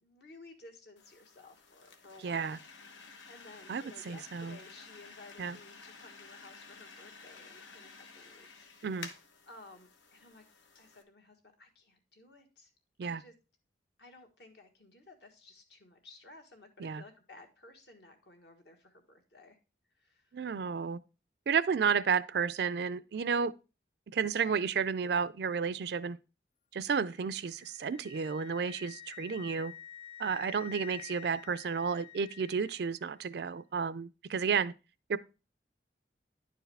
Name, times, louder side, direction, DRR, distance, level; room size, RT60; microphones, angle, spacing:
voice 1, 0.0-2.6 3.3-8.7 9.5-10.4 10.7-12.7 13.0-13.3 14.0-19.6 20.0-20.3 29.2-29.4, left 2 dB, 60° left, 1.5 m, -56 dB
sound 1, 1.0-11.0, left 4 dB, 85° left, 1.0 m, -52 dB
voice 2, 2.2-2.6 3.7-4.6 5.4-5.6 8.8-9.1 13.0-13.2 16.8-17.0 20.3-21.0 21.5-23.5 24.1-26.2 26.7-29.7 30.2-34.7 35.1-35.2, right 6 dB, 60° right, 0.4 m, -32 dB
Wind instrument woodwind instrument, 27.1-33.1, left 10 dB, 35° left, 0.3 m, -50 dB
10.5 x 4.7 x 3.3 m
head